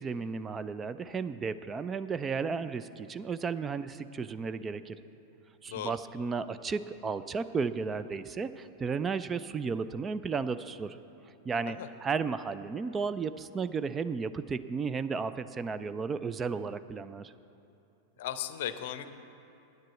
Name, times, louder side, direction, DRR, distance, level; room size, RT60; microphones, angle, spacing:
voice 1, 0.0-5.0 5.6-11.0 11.4-17.3, right 5 dB, 20° right, 13 dB, 0.3 m, -34 dB
voice 2, 18.2-19.1, left 11 dB, 55° left, 11 dB, 0.6 m, -36 dB
10.0 x 9.4 x 7.6 m, 2.8 s
figure-of-eight pair, 90°, 0 cm